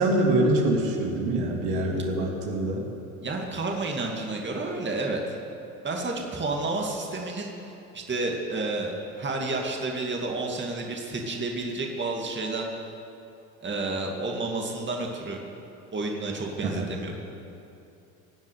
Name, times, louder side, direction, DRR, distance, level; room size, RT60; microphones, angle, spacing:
voice 1, 0.0-2.8 16.6-16.9, right 1 dB, 70° right, 0 dB, 2.9 m, -24 dB
voice 2, 3.2-5.4 5.8-7.5 7.9-12.6 13.6-15.4 15.9-17.1, right 2 dB, 25° right, 1 dB, 2.4 m, -30 dB
19.0 x 7.3 x 9.4 m, 2.7 s
hypercardioid pair, 75°, 46 cm